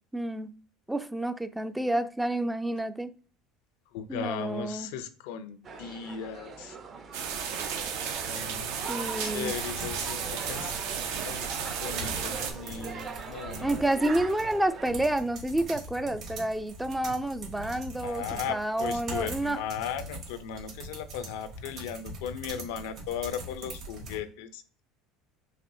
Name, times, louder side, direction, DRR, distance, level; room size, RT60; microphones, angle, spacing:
voice 1, 0.1-0.5 0.9-3.1 4.1-4.9 8.9-9.5 13.6-18.2 18.5-19.6, right 1 dB, 5° right, 0.3 m, -29 dB
voice 2, 3.9-6.8 8.3-8.9 9.2-10.8 11.2-11.5 11.8-13.8 18.0-24.6, left 8 dB, 80° left, 0.4 m, -37 dB
sound 1, 5.6-14.9, right 5 dB, 40° right, 0.7 m, -41 dB
sound 2, 7.1-12.5, right 7 dB, 75° right, 0.7 m, -34 dB
sound 3, 9.4-24.2, right 1 dB, 60° right, 1.8 m, -42 dB
4.1 x 3.1 x 2.6 m
supercardioid pair, 95°, 0 cm